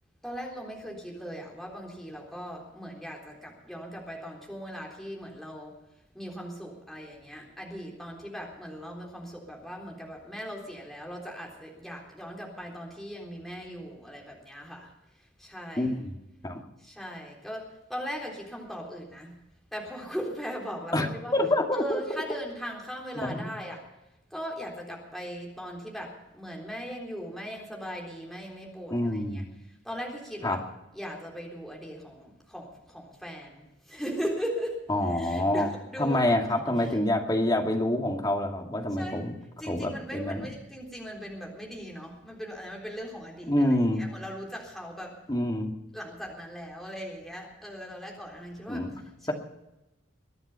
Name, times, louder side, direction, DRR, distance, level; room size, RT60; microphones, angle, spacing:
voice 1, 0.2-5.7 6.1-15.9 16.8-19.3 19.7-21.3 21.7-23.8 24.3-29.4 29.8-30.6 30.9-36.4 36.8-37.0 39.0-39.2 39.6-45.2 45.9-48.9 49.2-49.3, equal, ahead, -2 dB, 3.7 m, -39 dB
voice 2, 15.8-16.1 16.4-16.6 20.9-22.2 23.2-23.5 28.9-29.4 30.4-30.6 34.9-35.7 36.0-39.3 39.6-40.4 43.5-44.0 45.3-45.7 48.7-48.9, left 1 dB, 20° left, 2 dB, 2.2 m, -27 dB
23.0 x 10.0 x 5.6 m, 0.92 s
head